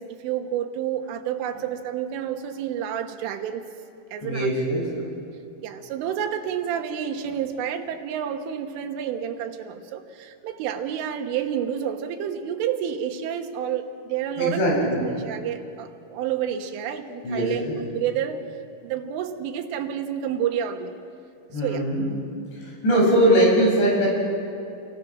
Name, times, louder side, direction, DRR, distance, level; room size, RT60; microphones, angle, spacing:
voice 1, 0.0-3.7 4.1-4.5 5.6-18.4 18.8-20.9 21.6-21.8, right 9 dB, 85° right, 4 dB, 3.7 m, -29 dB
voice 2, 4.2-4.9 14.4-15.0 17.2-17.8 21.5-22.0 22.6-24.1, right 1 dB, 65° left, -4 dB, 10.0 m, -21 dB
29.5 x 23.0 x 6.2 m, 2.5 s
omnidirectional pair, 5.5 m